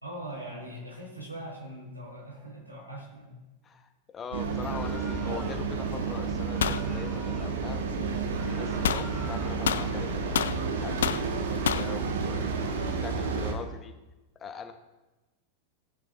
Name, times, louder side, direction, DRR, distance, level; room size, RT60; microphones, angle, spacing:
voice 1, 0.0-3.4, right 1 dB, 85° right, -4 dB, 3.4 m, -41 dB
voice 2, 3.6-7.8 8.4-10.5 10.8-12.4 12.8-13.9 14.4-14.7, left 6 dB, 25° left, 8 dB, 0.9 m, -42 dB
sound 1, 4.3-13.5, right 4 dB, 65° right, 1.2 m, -31 dB
sound 2, 4.6-5.7 6.5-7.6 8.3-9.7, equal, 5° right, 1.2 m, -48 dB
sound 3, 6.6-6.8 8.8-9.1 9.6-10.6 11.0-11.3 11.6-11.9, left 8 dB, 65° left, 0.3 m, -27 dB
16.5 x 8.9 x 2.5 m, 1.1 s
figure-of-eight pair, 90°, 0 cm